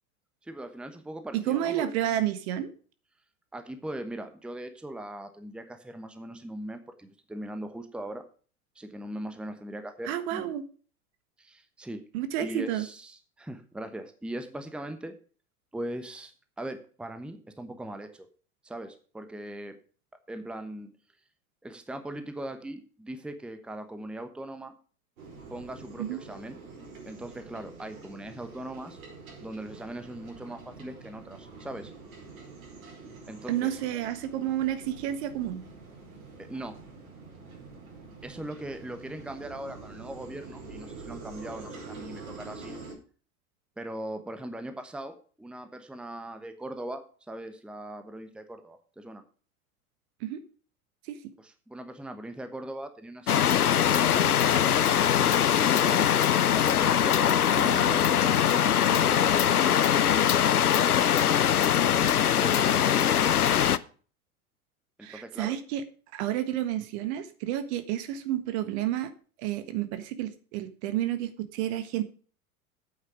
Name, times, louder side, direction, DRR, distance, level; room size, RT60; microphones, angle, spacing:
voice 1, 0.4-2.2 3.5-8.2 8.7-10.5 11.4-12.0 12.4-15.2 15.7-18.3 18.6-19.8 20.3-20.9 21.6-24.7 25.5-26.6 27.1-29.0 29.4-31.9 33.3-33.7 36.4-36.8 38.2-42.8 43.8-49.2 51.4-56.1 56.5-63.2 65.0-65.5, right 1 dB, ahead, 8 dB, 1.1 m, -40 dB
voice 2, 1.3-2.7 10.0-10.6 12.1-12.9 26.0-26.2 33.5-35.6 50.2-50.4 51.0-51.2 57.6-58.0 65.0-65.8 66.1-69.1 69.4-72.0, right 12 dB, 45° right, 11 dB, 1.5 m, -30 dB
sound 1, 25.2-43.0, right 3 dB, 65° right, 5.2 m, -46 dB
sound 2, 53.3-63.8, left 9 dB, 80° left, 0.7 m, -22 dB
9.6 x 8.6 x 4.9 m, 0.40 s
figure-of-eight pair, 85°, 44 cm